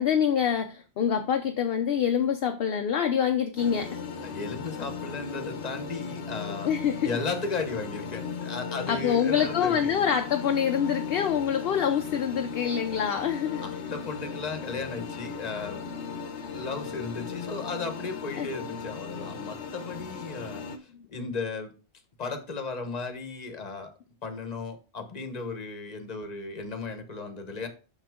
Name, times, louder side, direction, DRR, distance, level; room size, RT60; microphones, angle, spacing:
voice 1, 0.0-4.0 6.6-7.1 8.9-13.6 18.3-18.5, left 8 dB, 65° left, 0.8 m, -26 dB
sound 1, 3.6-20.8, left 5 dB, 90° left, 1.2 m, -37 dB
voice 2, 4.2-6.7 7.0-9.9 13.6-15.8 16.5-21.7 22.2-23.9 24.2-27.7, left 4 dB, 40° left, 1.2 m, -35 dB
6.4 x 6.0 x 3.6 m
omnidirectional pair, 1.1 m